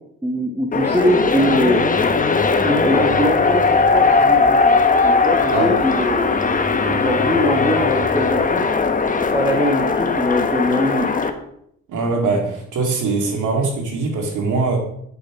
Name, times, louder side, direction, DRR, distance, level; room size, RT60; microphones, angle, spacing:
voice 1, 0.2-1.8 2.6-4.6 5.2-6.3 6.9-8.6 9.2-11.1, equal, 5° right, 0 dB, 1.8 m, -22 dB
sound 1, 0.7-11.3, left 4 dB, 25° left, 1.1 m, -18 dB
voice 2, 11.9-14.8, right 3 dB, 80° right, 2 dB, 2.8 m, -21 dB
8.3 x 8.3 x 4.8 m, 0.71 s
cardioid pair, 90°, 30 cm